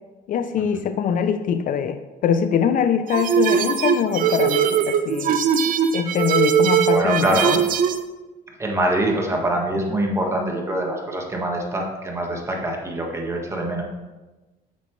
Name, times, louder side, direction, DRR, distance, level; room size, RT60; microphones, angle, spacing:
voice 1, 0.3-5.4 5.9-7.6, left 7 dB, 55° left, 10 dB, 0.4 m, -23 dB
sound 1, 3.1-8.0, right 8 dB, 55° right, 0.6 m, -20 dB
voice 2, 6.9-7.6 8.6-13.8, right 1 dB, 15° right, 1 dB, 1.4 m, -24 dB
8.3 x 6.2 x 3.1 m, 1.1 s
cardioid pair, 110°, 17 cm